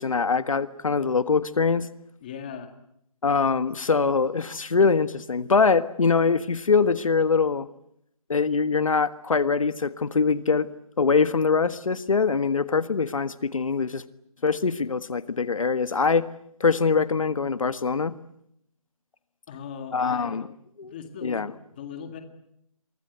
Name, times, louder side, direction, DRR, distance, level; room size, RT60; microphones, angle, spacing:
voice 1, 0.0-1.9 3.2-7.7 8.3-10.7 11.0-14.0 14.4-16.2 16.6-18.1 19.9-20.4 20.8-20.9 21.2-21.5, left 5 dB, 65° left, 13 dB, 1.5 m, -23 dB
voice 2, 2.2-2.7 19.5-20.4 20.9-22.2, left 7 dB, 15° left, 6 dB, 2.0 m, -38 dB
28.5 x 24.0 x 8.1 m, 0.75 s
hypercardioid pair, 175°, 18 cm